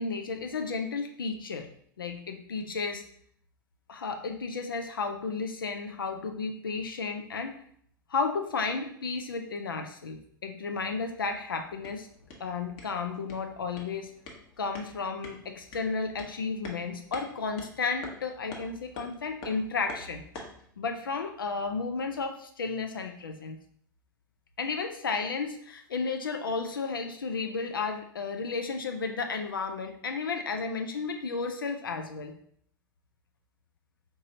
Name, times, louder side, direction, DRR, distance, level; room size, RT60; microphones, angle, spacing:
voice 1, 0.0-1.7 2.0-3.0 3.9-7.6 8.1-12.1 12.4-14.1 14.6-20.3 20.8-23.6 24.6-32.4, left 4 dB, 80° left, 5 dB, 0.4 m, -33 dB
sound 1, 11.6-20.7, left 2 dB, 45° left, 0.9 m, -48 dB
4.6 x 2.9 x 2.7 m, 0.63 s
figure-of-eight pair, 85°, 11 cm